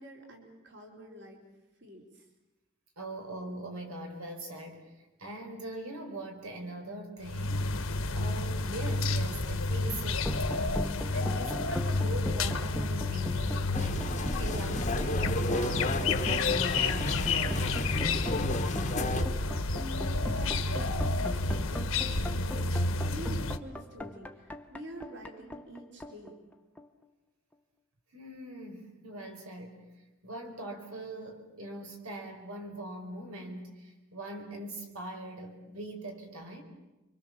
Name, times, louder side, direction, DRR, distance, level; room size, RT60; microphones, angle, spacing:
voice 1, 0.0-1.4 1.8-2.2 18.9-19.4 19.7-26.4, equal, 55° right, 1 dB, 3.9 m, -47 dB
voice 2, 3.0-17.6 28.1-29.9 30.2-36.6, right 1 dB, 90° right, 4 dB, 4.5 m, -42 dB
sound 1, 7.2-23.6, left 3 dB, 80° left, 1.5 m, -30 dB
sound 2, 10.2-27.0, equal, 5° left, 0.8 m, -40 dB
sound 3, 13.7-19.2, left 2 dB, 35° left, 1.1 m, -33 dB
29.5 x 24.5 x 7.2 m, 1.1 s
head